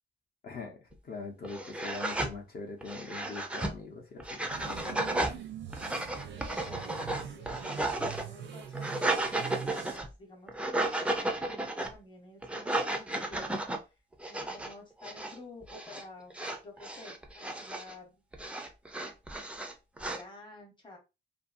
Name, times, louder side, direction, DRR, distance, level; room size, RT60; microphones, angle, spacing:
voice 1, 0.4-5.1, left 4 dB, 55° left, 0.7 m, -43 dB
sound 1, 0.9-1.0 1.4-2.3 2.8-3.7 4.2-5.4 5.7-8.2 8.6-10.1 10.5-11.9 12.4-13.8 14.2-14.7 15.0-15.4 15.6-16.0 16.3-17.9 18.3-20.2, right 2 dB, 5° right, 0.4 m, -34 dB
sound 2, 4.5-10.0, right 8 dB, 85° right, 0.6 m, -43 dB
voice 2, 6.3-14.0 14.3-16.3 16.6-18.2 20.0-21.0, left 2 dB, 25° left, 0.8 m, -51 dB
2.6 x 2.6 x 2.5 m
wide cardioid pair, 155°, 19 cm